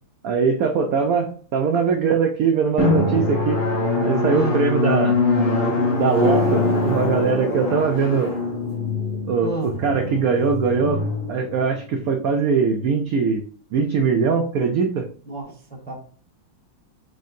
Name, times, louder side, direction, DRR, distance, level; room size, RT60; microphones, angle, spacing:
voice 1, 0.2-3.6 4.0-5.2 6.0-8.3 9.3-11.0 11.3-13.4 13.7-15.1, right 5 dB, 75° right, 4 dB, 0.8 m, -21 dB
Drum, 2.8-12.1, left 2 dB, 70° left, 2.1 m, -23 dB
voice 2, 4.3-4.6 9.4-9.7 15.2-15.9, right 2 dB, 5° left, -1 dB, 0.8 m, -29 dB
4.4 x 3.1 x 2.6 m, 0.43 s
omnidirectional pair, 2.1 m